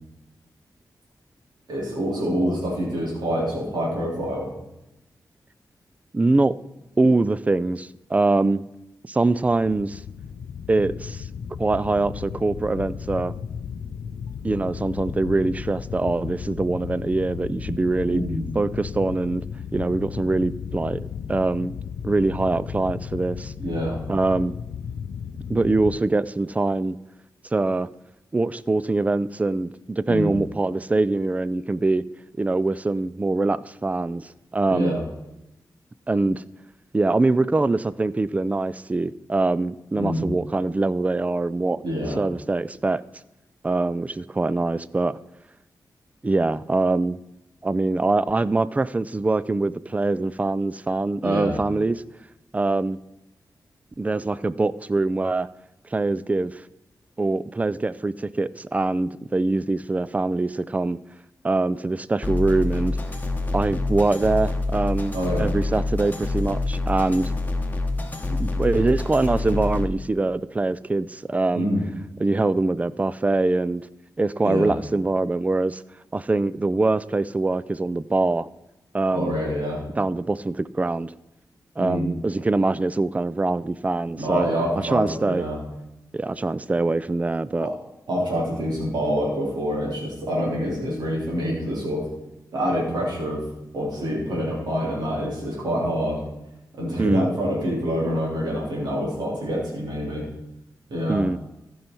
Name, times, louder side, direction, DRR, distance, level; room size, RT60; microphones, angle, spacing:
voice 1, 1.7-4.5 18.1-18.5 23.6-24.0 30.1-30.3 34.7-35.0 39.9-40.3 41.8-42.2 51.2-51.6 65.1-65.5 71.5-71.8 74.4-74.7 79.1-79.8 81.8-82.1 84.2-85.6 87.6-87.7 88.1-92.1 92.5-93.4 93.7-96.2 96.8-100.3 100.9-101.2, equal, 85° right, -4 dB, 3.1 m, -26 dB
voice 2, 6.1-6.6 7.0-8.7 9.0-10.0 10.7-11.3 11.6-13.3 14.4-18.2 18.6-19.5 19.7-21.8 22.0-23.5 24.1-24.6 25.5-27.0 27.5-27.9 28.3-32.0 32.4-34.9 36.1-36.4 36.9-41.8 42.2-43.0 43.6-45.2 46.2-47.2 47.6-52.0 52.5-53.0 54.0-55.5 55.9-56.6 57.2-61.0 61.4-63.0 63.5-67.3 68.3-71.7 72.2-73.9 74.2-75.8 76.1-78.5 78.9-79.4 80.0-81.1 81.8-84.5 84.8-85.5 86.1-87.7 97.0-97.3 101.1-101.4, right 2 dB, 20° right, 18 dB, 0.3 m, -23 dB
sound 1, 9.5-26.0, left 7 dB, 90° left, 0.4 m, -34 dB
sound 2, 62.2-69.9, left 2 dB, 25° left, 1.2 m, -26 dB
14.5 x 5.6 x 4.5 m, 0.91 s
wide cardioid pair, 85°, 7 cm